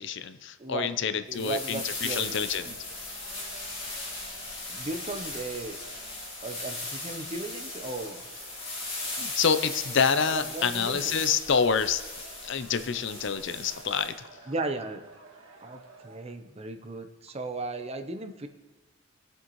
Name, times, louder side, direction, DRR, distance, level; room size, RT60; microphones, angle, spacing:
voice 1, 0.0-2.7 9.2-12.0 12.4-14.3, left 6 dB, 65° left, 11 dB, 0.6 m, -27 dB
voice 2, 0.6-2.7 4.7-5.8 6.4-8.2 10.3-11.2 14.5-15.0 15.6-18.5, right 3 dB, 30° right, 7 dB, 0.8 m, -36 dB
sound 1, 1.3-14.1, left 2 dB, 30° left, 3.4 m, -38 dB
sound 2, 2.0-16.2, right 3 dB, 90° right, 1.5 m, -52 dB
21.5 x 8.0 x 3.1 m, 1.2 s
head